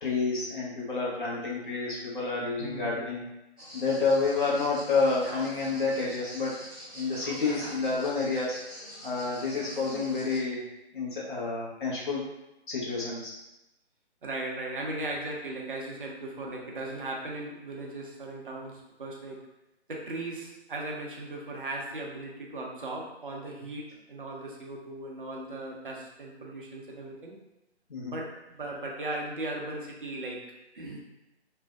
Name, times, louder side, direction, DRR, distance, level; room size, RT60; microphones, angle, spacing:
voice 1, 0.0-3.3 3.7-6.5 6.9-8.6 9.0-10.6 10.9-12.2 12.7-13.3 27.9-28.2, left 4 dB, 50° left, -6 dB, 0.9 m, -29 dB
voice 2, 2.6-3.1 14.2-19.5 19.9-27.4 28.1-31.0, right 2 dB, 50° right, -1 dB, 0.5 m, -37 dB
sound 1, 3.6-10.4, equal, 5° right, 0.7 m, -44 dB
2.5 x 2.1 x 2.3 m, 0.93 s
figure-of-eight pair, 145°, 33 cm